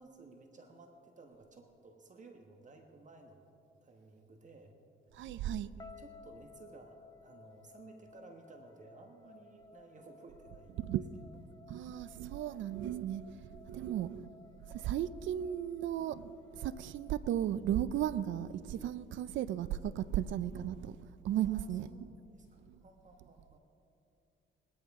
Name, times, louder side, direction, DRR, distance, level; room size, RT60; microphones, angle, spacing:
voice 1, 0.0-3.4 3.8-4.8 5.7-10.8 13.7-13.9 18.1-18.3 20.5-20.6 21.3-23.6, right 3 dB, 40° right, 1.3 m, -56 dB
voice 2, 5.1-5.7 10.8-11.1 11.3-22.1 22.7-22.8, right 11 dB, 75° right, 0.5 m, -36 dB
sound 1, 5.8-17.9, left 4 dB, 20° left, 0.6 m, -58 dB
19.5 x 12.5 x 3.6 m
cardioid pair, 90°, 20 cm